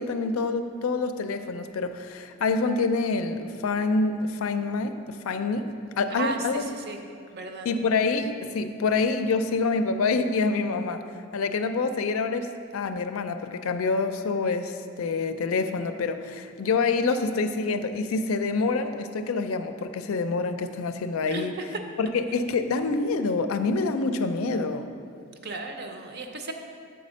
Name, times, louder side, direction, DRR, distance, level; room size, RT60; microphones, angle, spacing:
voice 1, 0.0-5.7 6.0-6.7 7.6-11.0 11.3-21.5 22.0-24.9, left 4 dB, 75° left, 8 dB, 0.4 m, -26 dB
voice 2, 6.2-7.0 7.3-7.7 21.3-21.8 25.4-26.5, right 3 dB, 50° right, 5 dB, 0.6 m, -34 dB
7.0 x 4.2 x 6.2 m, 2.3 s
head